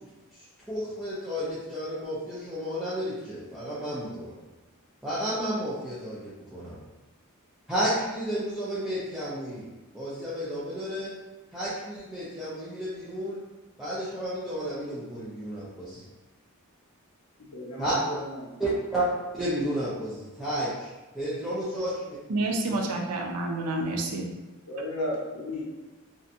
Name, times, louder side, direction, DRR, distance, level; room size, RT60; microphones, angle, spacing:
voice 1, 0.3-4.4 5.0-6.8 7.7-9.6 9.9-11.1 11.5-13.4 13.8-16.0 17.8-18.0 18.6-19.1 19.3-22.5 22.8-22.9, right 1 dB, ahead, -11 dB, 0.4 m, -32 dB
voice 2, 17.4-18.5 24.7-25.7, left 1 dB, 65° left, -4 dB, 0.7 m, -34 dB
voice 3, 22.3-24.3, right 2 dB, 90° right, 2 dB, 0.4 m, -29 dB
2.5 x 2.1 x 2.6 m, 1.2 s
head